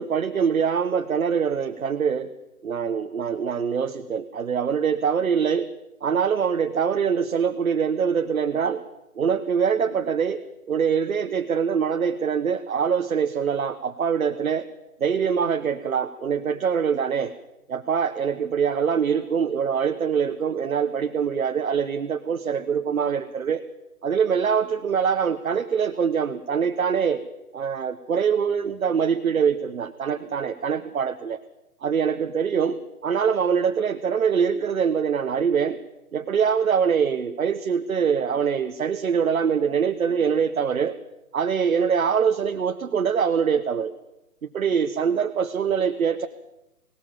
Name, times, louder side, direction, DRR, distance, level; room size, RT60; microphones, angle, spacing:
voice 1, 0.0-2.3 2.6-5.7 6.0-8.8 9.1-14.7 15.0-17.3 17.7-23.6 24.0-27.2 27.5-31.4 31.8-35.8 36.1-40.9 41.3-43.9 44.4-46.3, right 7 dB, 60° right, 6 dB, 1.3 m, -24 dB
19.5 x 19.0 x 7.3 m, 0.91 s
figure-of-eight pair, 140°, 46 cm